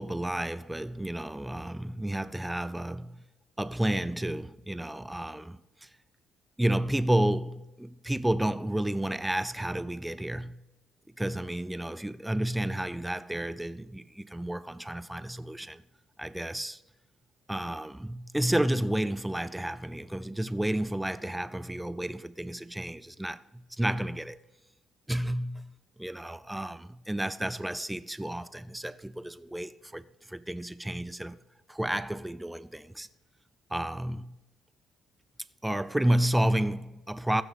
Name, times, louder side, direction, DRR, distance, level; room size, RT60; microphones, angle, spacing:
voice 1, 0.0-3.2 3.6-5.9 6.6-10.6 11.2-15.8 16.2-16.8 17.5-24.4 25.1-31.4 31.7-33.1 33.7-34.4 35.6-37.4, right 1 dB, 5° right, 0.5 m, -31 dB
15.5 x 6.4 x 5.1 m
cardioid pair, 100°, 0 cm